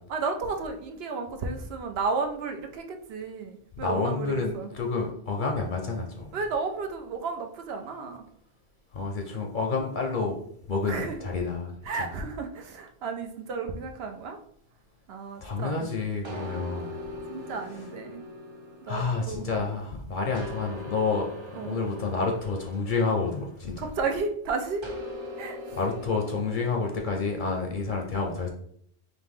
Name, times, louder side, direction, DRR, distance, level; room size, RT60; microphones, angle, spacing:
voice 1, 0.1-4.7 6.3-8.3 10.9-11.2 11.8-14.4 15.1-15.9 17.3-18.2 18.8-19.5 21.5-21.8 23.8-24.8 25.3-25.8, right 4 dB, 75° right, 5 dB, 0.8 m, -33 dB
voice 2, 3.8-6.3 8.9-10.4 10.7-11.8 15.4-17.0 18.9-21.3 21.6-23.8 25.7-28.5, left 4 dB, 55° left, 2 dB, 0.7 m, -29 dB
sound 1, 16.2-19.8 20.3-24.1 24.8-27.5, left 1 dB, 40° right, 0.4 m, -41 dB
4.1 x 2.8 x 3.5 m, 0.66 s
omnidirectional pair, 1.1 m